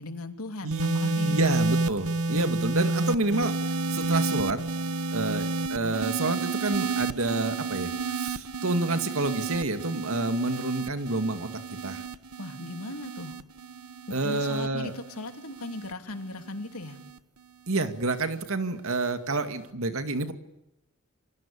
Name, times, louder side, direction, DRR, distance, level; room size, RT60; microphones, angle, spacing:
voice 1, 0.0-1.5 12.4-13.4 14.2-17.0, left 2 dB, 85° left, 6 dB, 2.9 m, -38 dB
voice 2, 0.6-4.6 5.1-11.5 11.8-12.0 14.1-14.9 17.7-20.3, right 2 dB, 70° right, 8 dB, 2.2 m, -29 dB
sound 1, 0.7-17.2 18.1-18.4, right 3 dB, 90° right, 1.2 m, -31 dB
28.0 x 24.0 x 8.6 m, 0.86 s
head